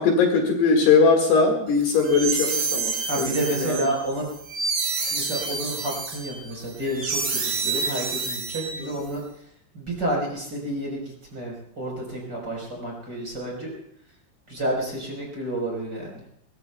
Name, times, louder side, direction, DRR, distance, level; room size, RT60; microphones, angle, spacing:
voice 1, 0.0-3.8 8.8-8.9, left 4 dB, 65° left, 0 dB, 3.6 m, -20 dB
sound 1, 1.8-9.1, right 4 dB, 70° right, 6.7 m, -28 dB
voice 2, 3.1-4.3 5.1-9.2 9.7-13.7 14.5-16.2, right 1 dB, 25° right, -2 dB, 4.5 m, -30 dB
22.0 x 20.5 x 2.3 m, 0.70 s
omnidirectional pair, 5.6 m